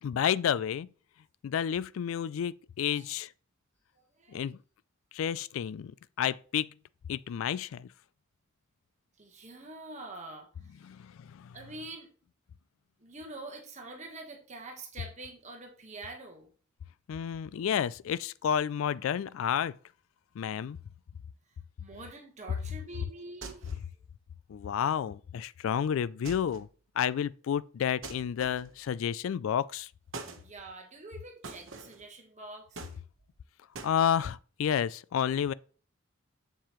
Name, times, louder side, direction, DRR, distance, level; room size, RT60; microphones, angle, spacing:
voice 1, 0.0-0.9 1.4-3.3 4.3-4.6 5.1-6.7 7.1-7.9 10.8-11.5 17.1-19.8 20.4-20.8 24.5-26.7 27.0-29.9 33.8-35.5, left 8 dB, 80° left, 0.3 m, -30 dB
voice 2, 3.9-4.4 9.2-10.9 11.5-12.1 13.0-16.5 21.5-23.9 30.4-32.9, right 2 dB, 35° right, 1.3 m, -46 dB
sound 1, 23.4-23.9 26.2-26.7 28.0-28.8 30.1-30.5 31.4-32.1 32.7-33.4 33.7-34.0, right 4 dB, 65° right, 1.1 m, -44 dB
7.4 x 6.8 x 3.0 m
head